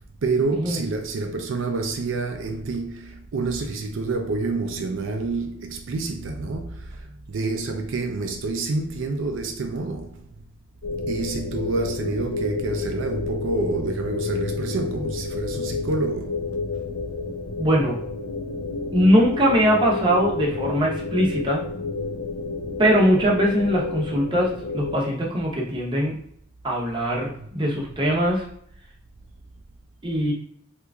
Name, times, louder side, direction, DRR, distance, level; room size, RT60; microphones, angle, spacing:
voice 1, 0.2-10.3 11.1-16.5 27.4-27.5, right 3 dB, 75° right, 0.4 m, -28 dB
sound 1, 10.8-25.0, left 3 dB, 70° left, 0.4 m, -30 dB
voice 2, 17.6-18.0 18.9-21.6 22.8-26.1 26.6-28.5 30.0-30.3, equal, 25° right, 0.7 m, -21 dB
2.9 x 2.4 x 3.4 m
head